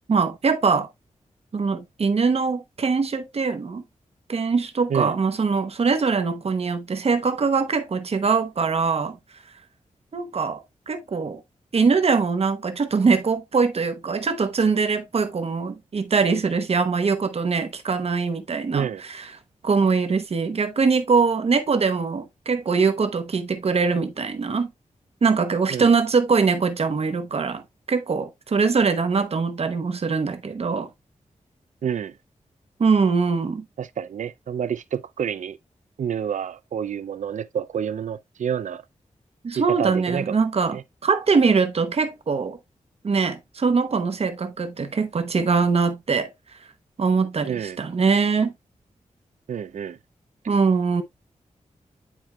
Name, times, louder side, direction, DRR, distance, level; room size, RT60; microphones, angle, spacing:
voice 1, 0.1-0.9 1.5-3.8 4.3-9.2 10.1-11.4 11.7-19.2 19.6-24.7 25.2-27.6 27.9-30.9 32.8-33.6 39.4-42.6 43.0-46.3 47.0-48.5 50.5-51.0, right 5 dB, 50° right, 1.0 m, -22 dB
voice 2, 31.8-32.2 33.8-35.6 36.0-38.8 39.5-40.4 40.7-40.8 47.4-47.8 49.5-50.0, right 8 dB, 75° right, 0.4 m, -28 dB
10.0 x 4.4 x 2.2 m
wide cardioid pair, 140°, 13 cm